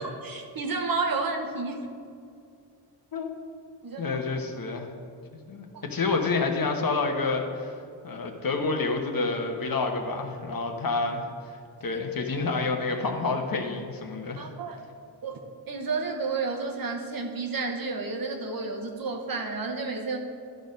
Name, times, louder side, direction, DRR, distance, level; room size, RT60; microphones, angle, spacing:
voice 1, 0.0-1.8 3.8-4.2 5.7-5.9 11.9-12.0 14.4-14.8 15.2-15.4 15.7-20.2, right 4 dB, 50° right, 2 dB, 1.2 m, -31 dB
voice 2, 4.0-4.9 5.5-7.7 8.0-11.2 11.8-14.4, left 3 dB, 50° left, 4 dB, 1.1 m, -28 dB
12.0 x 4.3 x 5.2 m, 2.3 s
cardioid pair, 60°, 45 cm